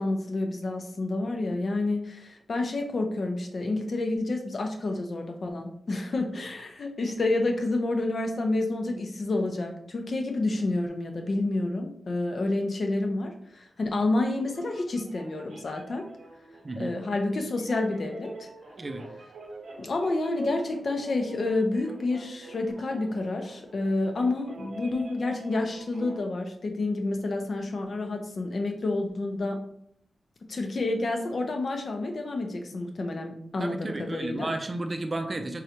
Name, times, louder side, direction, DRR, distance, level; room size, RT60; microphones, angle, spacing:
voice 1, 0.0-16.1 16.8-18.5 19.8-29.6 30.5-34.5, left 2 dB, 60° left, 3 dB, 0.6 m, -29 dB
sound 1, 14.1-26.2, right 2 dB, 75° right, 0.7 m, -46 dB
voice 2, 33.6-35.6, right 2 dB, 35° right, 6 dB, 0.4 m, -32 dB
3.8 x 3.2 x 2.9 m, 0.69 s
wide cardioid pair, 85°, 0 cm